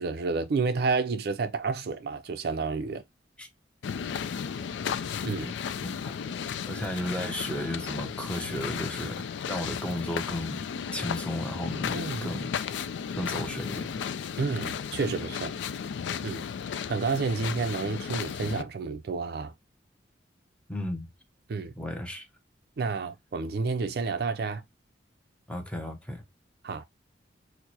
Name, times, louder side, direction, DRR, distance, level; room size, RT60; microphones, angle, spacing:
voice 1, 0.0-3.0 5.2-5.5 11.9-12.3 14.4-15.5 16.2-16.4 16.9-19.5 21.5-21.7 22.8-24.6 26.6-26.8, right 4 dB, 60° right, 0.4 m, -30 dB
sound 1, 3.8-18.6, left 7 dB, 85° left, 0.3 m, -34 dB
voice 2, 5.8-6.1 6.7-10.6 10.9-12.5 13.2-14.1 20.7-21.1 21.8-22.3 25.5-26.2, left 1 dB, 5° left, 0.7 m, -34 dB
4.5 x 2.0 x 2.7 m
head